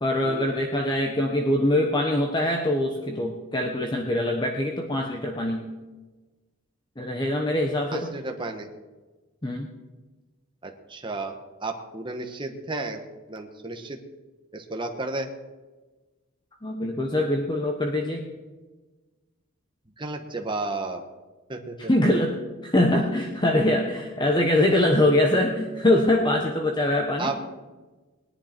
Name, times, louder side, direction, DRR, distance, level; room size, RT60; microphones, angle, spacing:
voice 1, 0.0-5.6 7.0-8.1 9.4-9.7 16.6-18.3 21.8-22.4 22.6-27.3, left 1 dB, 20° left, 1 dB, 1.1 m, -23 dB
voice 2, 7.9-8.7 10.6-11.3 11.6-13.0 13.3-14.0 14.5-15.3 20.0-21.0 21.5-21.8 27.2-27.4, right 2 dB, 20° right, 4 dB, 1.1 m, -32 dB
20.5 x 10.5 x 4.4 m, 1.2 s
head